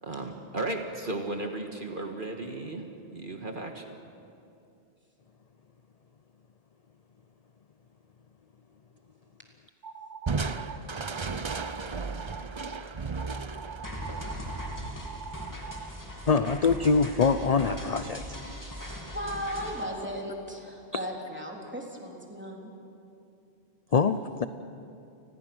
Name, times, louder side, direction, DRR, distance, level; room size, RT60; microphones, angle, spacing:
voice 1, 0.0-3.9, right 2 dB, 50° right, 3 dB, 1.7 m, -35 dB
sound 1, 9.8-10.8 11.1-11.8 12.2-12.8 13.2-15.9, right 6 dB, 85° right, 1.3 m, -42 dB
Crushing, 10.3-15.6, right 4 dB, 30° right, 0.6 m, -35 dB
sound 2, 13.8-19.8, equal, 15° left, 2.8 m, -39 dB
voice 2, 16.3-18.2 23.9-24.5, left 5 dB, 45° left, 11 dB, 0.6 m, -24 dB
voice 3, 19.1-22.7, equal, 10° right, -1 dB, 3.5 m, -36 dB
29.5 x 20.5 x 6.2 m, 2.6 s
omnidirectional pair, 1.1 m